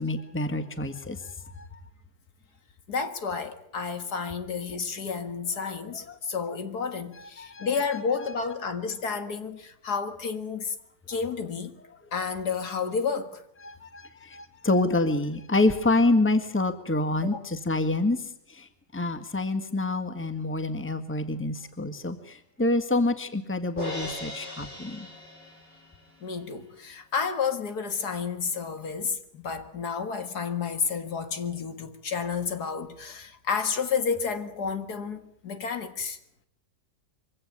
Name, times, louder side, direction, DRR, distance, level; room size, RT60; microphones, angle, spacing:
voice 1, 0.0-1.7 7.4-7.7 13.6-18.2 18.6-18.7 18.9-25.1, left 2 dB, 5° left, 1.6 m, -27 dB
voice 2, 2.9-10.8 11.1-11.7 12.1-13.4 17.2-17.4 26.2-36.2, left 5 dB, 65° left, 2.3 m, -31 dB
Crash cymbal, 23.8-26.0, left 1 dB, 85° left, 8.3 m, -38 dB
24.0 x 16.5 x 9.6 m
omnidirectional pair, 1.8 m